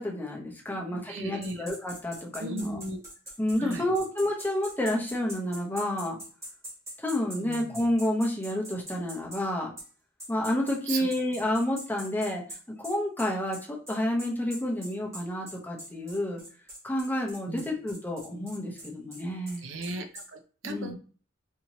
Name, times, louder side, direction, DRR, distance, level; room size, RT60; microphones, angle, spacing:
voice 1, 0.0-2.8 3.4-6.2 7.0-9.7 10.3-12.4 12.8-16.4 16.8-19.7 20.6-20.9, left 1 dB, 10° left, -1 dB, 0.7 m, -30 dB
voice 2, 1.1-1.6 2.4-3.0 3.6-3.8 7.4-7.7 10.9-11.1 17.5-17.7 19.6-20.9, right 2 dB, 70° right, 6 dB, 0.5 m, -36 dB
sound 1, 1.4-9.4 9.8-9.9 10.2-20.3, right 1 dB, 15° right, 1.2 m, -43 dB
2.8 x 2.7 x 2.9 m, 0.40 s
head